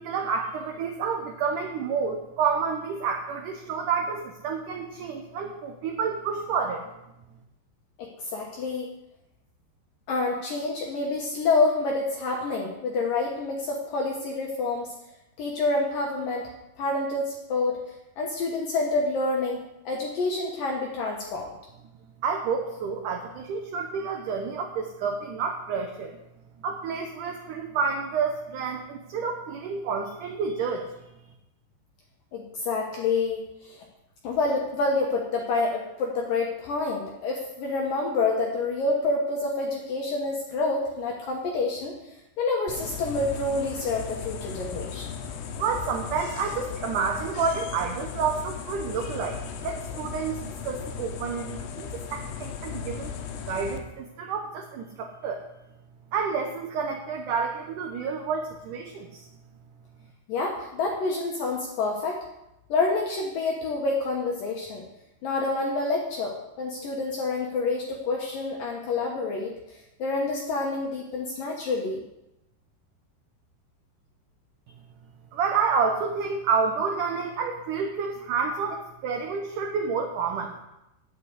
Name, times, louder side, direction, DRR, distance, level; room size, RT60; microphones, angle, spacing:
voice 1, 0.0-6.8 22.2-26.2 26.6-30.9 45.6-53.1 53.5-55.4 56.1-59.3 75.3-80.6, right 5 dB, 70° right, 2 dB, 2.0 m, -29 dB
voice 2, 8.0-8.9 10.1-14.9 15.4-16.4 16.8-17.8 18.2-19.6 19.9-21.5 32.3-33.8 34.2-42.0 42.4-45.0 60.3-62.2 62.7-64.8 65.2-69.6 70.0-72.0, left 3 dB, 65° left, -1 dB, 2.6 m, -27 dB
sound 1, 42.7-53.8, left 7 dB, 80° left, 3.2 m, -37 dB
9.9 x 8.1 x 8.1 m, 0.90 s
omnidirectional pair, 4.9 m